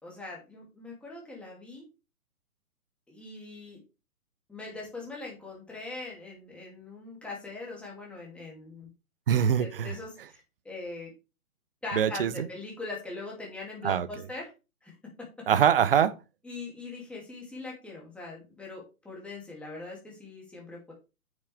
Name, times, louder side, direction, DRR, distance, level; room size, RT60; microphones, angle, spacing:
voice 1, 0.0-1.8 3.1-3.8 4.5-8.9 9.6-11.1 11.8-14.5 14.8-14.9 16.4-20.9, left 3 dB, 5° left, 2.5 m, -41 dB
voice 2, 9.3-9.9 11.9-12.5 13.8-14.1 15.5-16.1, right 8 dB, 40° right, 0.8 m, -23 dB
9.0 x 6.5 x 3.4 m
hypercardioid pair, 145°, 44 cm